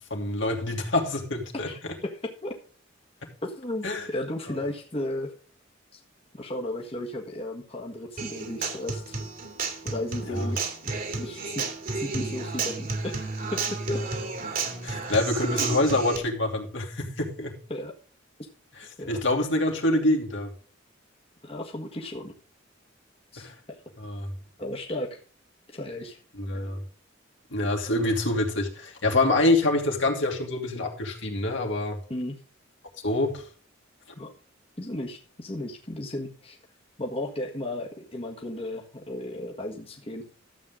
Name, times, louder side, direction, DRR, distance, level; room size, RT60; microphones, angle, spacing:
voice 1, 0.1-1.7 3.8-4.0 10.3-10.5 14.8-17.6 19.1-20.5 23.4-23.5 24.0-24.3 26.4-26.8 27.5-32.0 33.0-33.5, left 2 dB, 70° left, 2 dB, 2.7 m, -26 dB
voice 2, 1.7-2.6 3.4-5.3 5.9-6.0 6.3-9.2 9.8-10.7 11.1-11.7 11.9-14.0 15.6-15.8 17.7-17.9 19.0-19.2 21.4-22.3 23.3-23.8 24.6-25.2 25.7-26.2 32.1-32.4 34.1-34.3 34.8-36.6 37.0-40.2, left 1 dB, 30° left, 0 dB, 1.6 m, -34 dB
Human voice / Acoustic guitar, 8.2-16.2, right 4 dB, 45° right, 2.3 m, -32 dB
13.0 x 7.8 x 3.7 m, 0.41 s
head